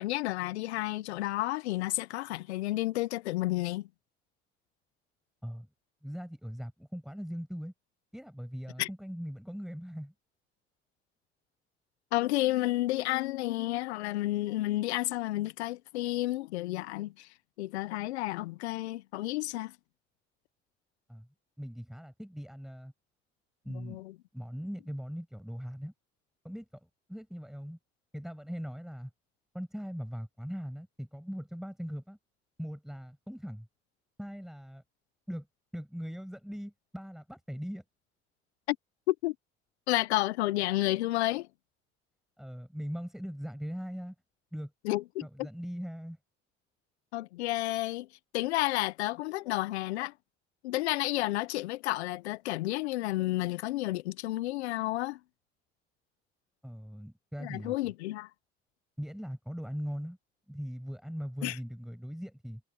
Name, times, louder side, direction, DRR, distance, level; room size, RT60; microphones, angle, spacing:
voice 1, 0.0-3.9 8.8-8.9 12.1-17.3 17.6-19.7 23.7-24.1 38.7-38.8 39.1-39.3 39.9-41.5 44.8-45.5 47.1-48.1 48.3-50.1 50.6-55.2 57.4-58.3 61.4-61.6, left 17 dB, 90° left, 0.7 m, -31 dB
voice 2, 6.0-7.7 8.1-10.1 21.1-21.3 21.6-22.9 23.6-24.0 24.3-25.9 26.4-26.7 27.1-27.8 28.1-29.1 29.5-32.2 32.6-33.7 34.2-34.8 35.3-35.5 35.7-37.8 42.4-44.1 44.5-44.7 45.2-46.2 56.6-57.7 59.0-60.2 60.5-62.6, equal, ahead, 5.9 m, -40 dB
hypercardioid pair, 45°, 32 cm